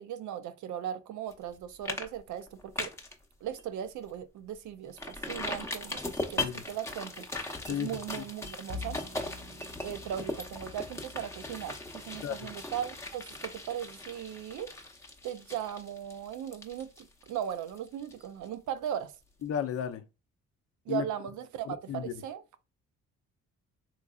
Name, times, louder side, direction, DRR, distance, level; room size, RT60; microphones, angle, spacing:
voice 1, 0.0-2.9 3.4-7.3 7.7-9.0 9.8-14.7 15.2-19.1 20.9-22.4, right 10 dB, 75° right, 0.5 m, -38 dB
sound 1, 1.3-1.5 1.9-2.1 2.4-3.1 3.6-3.7 4.1-4.2 5.0-18.5 18.9-19.0, left 2 dB, 10° left, 0.7 m, -39 dB
Bowed string instrument, 8.7-15.1, left 3 dB, 25° right, 0.6 m, -48 dB
voice 2, 19.4-20.0 20.9-21.1 21.7-22.1, left 9 dB, 50° left, 0.5 m, -34 dB
3.7 x 3.0 x 2.3 m
cardioid pair, 90°, 30 cm